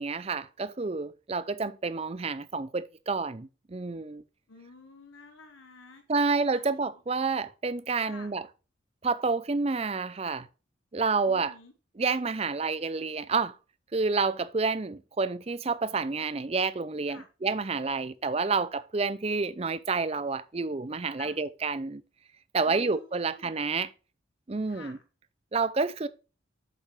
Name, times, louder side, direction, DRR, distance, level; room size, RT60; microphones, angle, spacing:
voice 1, 0.0-4.2 6.1-8.5 9.0-10.5 10.9-11.5 12.0-13.5 13.9-22.0 22.5-23.9 24.5-25.0 25.5-26.1, right 4 dB, 30° right, 0.5 m, -29 dB
voice 2, 4.5-6.8 8.0-8.3 11.3-11.7 17.1-17.3 21.2-21.4 22.6-23.5 24.6-25.0, left 3 dB, 80° left, 1.2 m, -50 dB
8.2 x 6.9 x 3.2 m
head